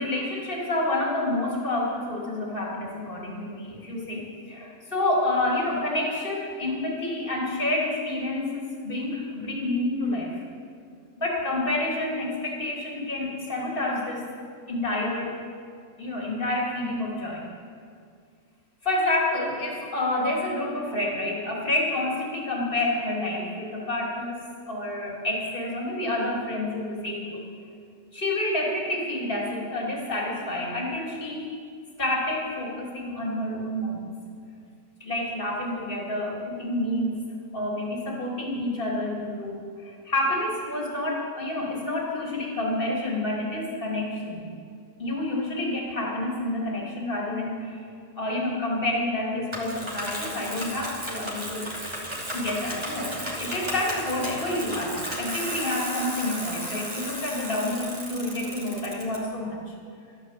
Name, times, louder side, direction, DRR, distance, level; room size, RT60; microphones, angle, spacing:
voice 1, 0.0-10.4 11.2-14.3 14.7-15.3 16.0-17.5 18.8-27.4 28.1-31.5 32.0-34.2 35.0-37.2 37.5-44.5 45.0-47.9 48.2-51.7 52.3-59.7, left 1 dB, 35° left, -2 dB, 3.0 m, -29 dB
Bicycle, 49.5-59.2, equal, 20° right, 2.8 m, -34 dB
13.5 x 10.5 x 7.5 m, 2.2 s
omnidirectional pair, 1.5 m